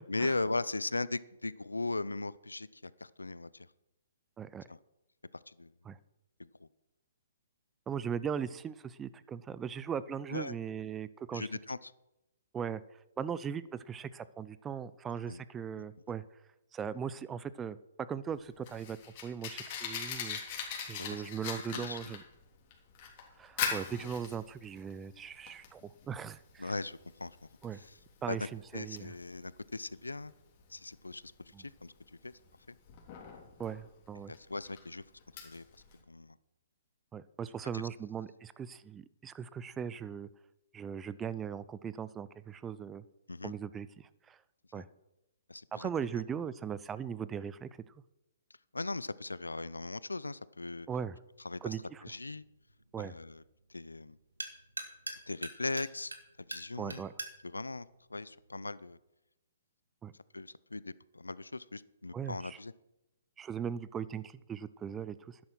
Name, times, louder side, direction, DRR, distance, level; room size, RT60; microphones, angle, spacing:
voice 1, 0.1-3.7 4.7-4.8 5.5-5.7 6.4-6.7 10.3-10.6 11.3-11.9 15.3-15.4 15.8-15.9 20.9-21.2 21.7-22.0 26.6-27.4 27.8-27.9 28.3-28.5 28.7-30.3 30.7-31.9 32.2-32.3 32.7-32.8 34.3-35.0 35.4-35.6 36.1-36.4 37.7-37.8 43.3-43.5 44.7-44.8 45.5-45.9 48.7-50.9 51.4-51.8 52.0-52.4 53.0-53.4 53.7-54.2 55.3-57.0 57.4-59.0 60.3-62.7, left 3 dB, 85° left, 19 dB, 0.6 m, -38 dB
voice 2, 4.4-4.7 5.9-6.0 7.9-11.5 12.5-12.8 13.2-16.2 16.7-17.8 18.1-19.0 19.2-22.2 23.4-26.7 27.6-27.8 28.2-29.1 31.5-31.7 33.6-34.3 37.1-40.3 40.7-43.0 43.4-44.4 44.7-44.9 45.7-47.7 50.9-51.2 51.6-52.0 52.9-53.1 56.8-57.1 60.0-60.1 62.1-62.6 63.4-65.4, right 7 dB, 15° right, 17 dB, 0.6 m, -39 dB
Fire, 18.3-36.0, left 7 dB, 35° left, 3.4 m, -42 dB
sound 1, 51.3-58.9, right 2 dB, 85° right, 1.9 m, -47 dB
12.0 x 10.5 x 6.1 m, 0.92 s
figure-of-eight pair, 130°, 0 cm